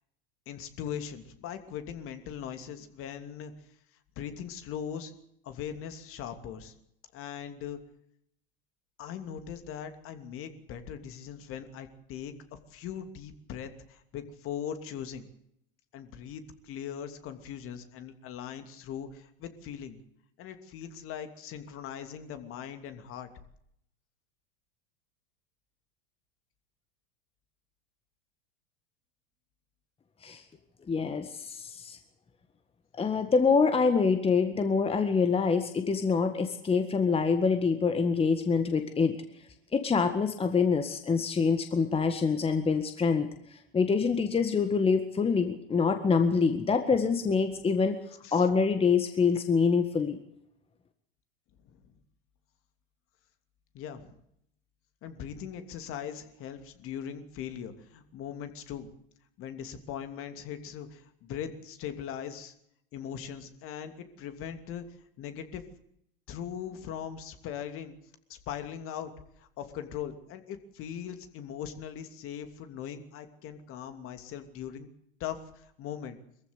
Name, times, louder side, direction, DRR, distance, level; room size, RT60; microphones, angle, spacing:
voice 1, 0.5-3.5 4.2-5.1 5.4-6.7 7.1-7.8 9.0-12.3 12.7-15.2 15.9-20.0 20.4-23.3 47.4-47.6 48.2-48.5 51.6-51.9 53.7-54.2 55.0-58.9 59.4-62.5 62.9-65.6 66.3-67.9 68.3-69.1 69.4-74.9 75.2-76.2, left 9 dB, 45° left, 8 dB, 2.9 m, -40 dB
voice 2, 30.9-32.0 32.9-39.2 39.7-48.0 48.3-50.2, left 5 dB, 20° left, 8 dB, 1.7 m, -26 dB
23.0 x 15.0 x 8.2 m, 0.75 s
hypercardioid pair, 95°, 30 cm